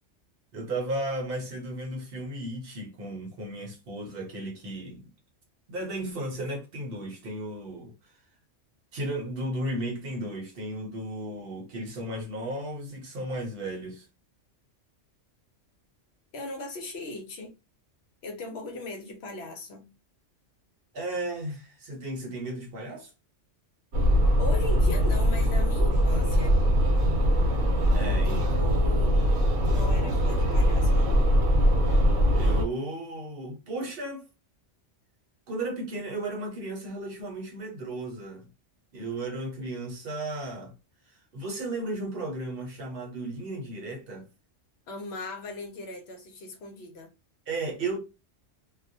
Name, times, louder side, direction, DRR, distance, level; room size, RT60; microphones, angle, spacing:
voice 1, 0.5-5.1 5.7-7.9 8.9-14.1 20.9-23.1 27.3-27.6 27.9-28.4 32.3-34.3 35.5-38.5 38.9-40.8 41.1-44.3 47.5-48.0, right 1 dB, 55° right, 0.8 m, -34 dB
voice 2, 16.3-17.5 18.2-19.9 24.4-26.6 28.2-29.3 29.6-31.1 44.9-47.1, left 2 dB, 65° left, 0.8 m, -38 dB
sound 1, 23.9-32.6, equal, 85° right, 1.0 m, -22 dB
2.3 x 2.1 x 2.6 m
omnidirectional pair, 1.2 m